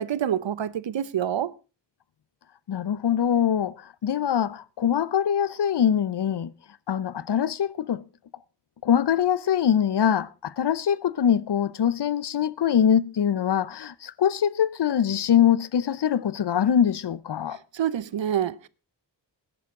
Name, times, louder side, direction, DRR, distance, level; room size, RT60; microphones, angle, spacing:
voice 1, 0.0-1.5 17.7-18.7, right 9 dB, 80° right, 0.8 m, -27 dB
voice 2, 2.7-6.5 6.9-8.0 8.8-17.6, left 9 dB, 65° left, 0.7 m, -23 dB
19.0 x 11.0 x 3.7 m
wide cardioid pair, 115°, 44 cm